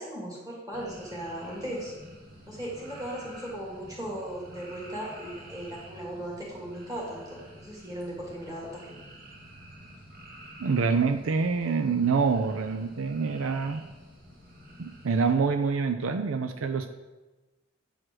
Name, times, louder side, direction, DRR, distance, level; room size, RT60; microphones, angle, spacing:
voice 1, 0.0-1.9 2.5-9.0, right 1 dB, 15° right, -3 dB, 2.4 m, -37 dB
sound 1, 0.7-15.3, right 1 dB, 45° right, 1.9 m, -49 dB
voice 2, 10.6-13.8 14.8-16.9, right 5 dB, 80° right, 7 dB, 0.5 m, -26 dB
8.8 x 4.9 x 6.2 m, 1.2 s
head